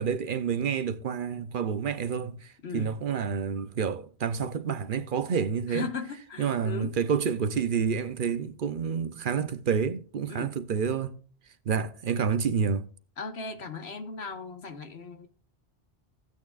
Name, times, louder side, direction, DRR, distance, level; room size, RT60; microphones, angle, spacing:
voice 1, 0.0-5.9 6.4-11.1 11.7-12.8, right 6 dB, 60° right, 0.8 m, -29 dB
voice 2, 2.6-2.9 5.7-7.0 10.3-10.6 13.2-15.3, left 4 dB, 80° left, 1.6 m, -37 dB
15.0 x 8.9 x 2.4 m
omnidirectional pair, 1.1 m